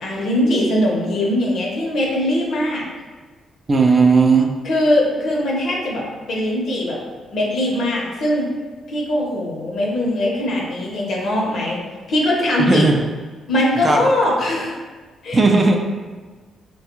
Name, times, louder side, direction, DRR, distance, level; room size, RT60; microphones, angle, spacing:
voice 1, 0.0-2.9 4.6-7.0 7.3-8.5 8.9-11.8 12.1-12.9 13.5-14.8 15.2-15.4, left 1 dB, 65° left, -2 dB, 0.8 m, -21 dB
voice 2, 3.7-4.5 12.6-13.0 13.8-14.0 15.3-15.8, right 4 dB, 35° right, 2 dB, 0.4 m, -15 dB
3.3 x 2.2 x 2.9 m, 1.4 s
cardioid pair, 85°, 0 cm